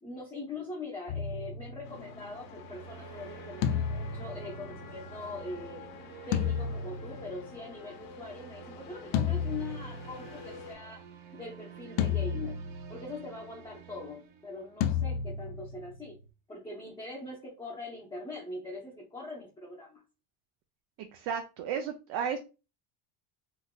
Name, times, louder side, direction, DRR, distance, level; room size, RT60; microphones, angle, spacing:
voice 1, 0.0-5.9 6.3-11.0 11.3-12.6 12.9-16.2 16.5-20.0, left 3 dB, 10° left, -4 dB, 0.7 m, -42 dB
sound 1, 1.1-2.4 3.6-5.3 6.3-7.7 9.1-10.5 12.0-13.2 14.8-16.2, left 7 dB, 80° left, 0.6 m, -33 dB
sound 2, 1.8-10.8, left 5 dB, 45° left, 0.7 m, -49 dB
sound 3, 2.2-15.1, right 9 dB, 75° right, 0.9 m, -50 dB
voice 2, 21.0-22.4, right 7 dB, 60° right, 6 dB, 0.5 m, -33 dB
3.7 x 2.5 x 2.2 m, 0.30 s
cardioid pair, 135°, 48 cm